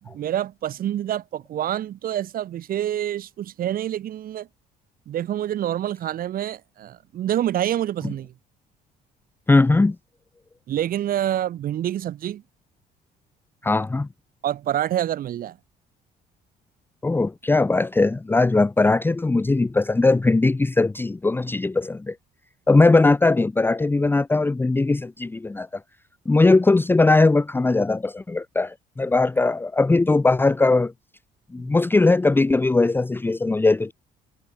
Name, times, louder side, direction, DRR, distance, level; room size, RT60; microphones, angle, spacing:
voice 1, 0.0-4.5 5.1-8.3 10.7-12.4 14.4-15.6, right 11 dB, 60° right, 1.8 m, -27 dB
voice 2, 9.5-10.0 13.6-14.1 17.0-22.2 22.7-25.7 26.3-30.9 31.5-33.9, left 3 dB, 10° left, 0.8 m, -19 dB
cardioid pair, 110°, 17 cm